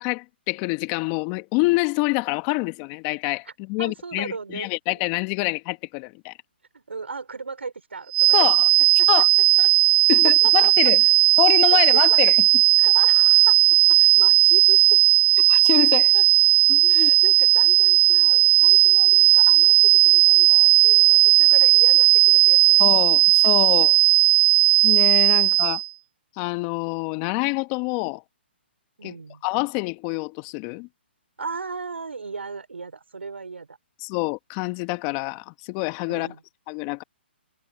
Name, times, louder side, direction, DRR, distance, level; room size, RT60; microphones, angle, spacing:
voice 1, 0.0-6.3 8.3-8.7 9.1-9.3 10.1-11.0 11.4-12.6 15.5-16.1 16.7-17.1 22.8-23.9 24.8-25.8 26.4-28.2 29.0-29.2 29.4-30.9 34.0-36.3 36.7-37.0, left 26 dB, 30° left, 1.7 m, -26 dB
voice 2, 3.8-4.7 6.7-8.5 8.8-9.1 9.6-9.7 10.2-10.7 11.7-12.1 12.8-15.0 15.9-16.2 16.9-22.9 23.4-23.5 25.3-25.4 29.0-29.4 31.4-33.8 36.1-36.4, right 4 dB, 90° right, 5.2 m, -35 dB
sound 1, 8.1-25.9, right 17 dB, 40° right, 1.1 m, -16 dB
hypercardioid pair, 145°, 6 cm